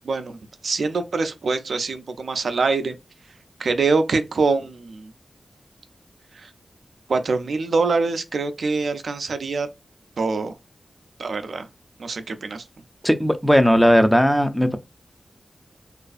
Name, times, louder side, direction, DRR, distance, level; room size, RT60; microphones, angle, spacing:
voice 1, 0.0-0.4 0.6-3.0 3.6-5.1 6.4-6.5 7.1-9.7 10.2-10.5 11.2-11.7 12.0-12.6, right 4 dB, 85° right, 0.3 m, -24 dB
voice 2, 13.0-14.8, equal, ahead, 0.4 m, -17 dB
2.4 x 2.3 x 2.3 m
cardioid pair, 50°, 0 cm